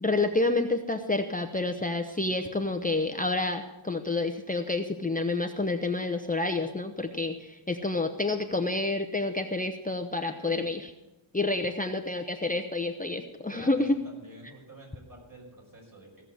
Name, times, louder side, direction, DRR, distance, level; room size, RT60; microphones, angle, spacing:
voice 1, 0.0-10.9 11.3-14.0, left 2 dB, 15° left, 5 dB, 0.8 m, -29 dB
voice 2, 13.5-16.2, right 1 dB, 45° right, -2 dB, 5.6 m, -49 dB
16.0 x 6.7 x 7.7 m, 1.0 s
wide cardioid pair, 75°, 48 cm